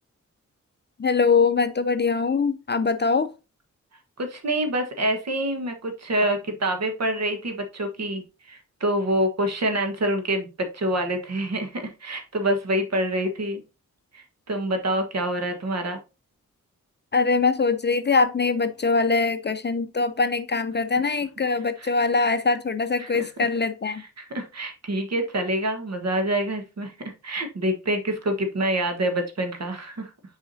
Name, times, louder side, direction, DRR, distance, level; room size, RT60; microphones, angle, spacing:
voice 1, 1.0-3.3 17.1-24.0, left 4 dB, 35° left, 0.5 m, -22 dB
voice 2, 4.2-13.6 14.1-16.0 21.8-21.9 23.0-23.5 23.9-26.9 27.2-30.1, right 1 dB, 55° right, 1.5 m, -26 dB
7.2 x 4.8 x 2.7 m
wide cardioid pair, 85°, 31 cm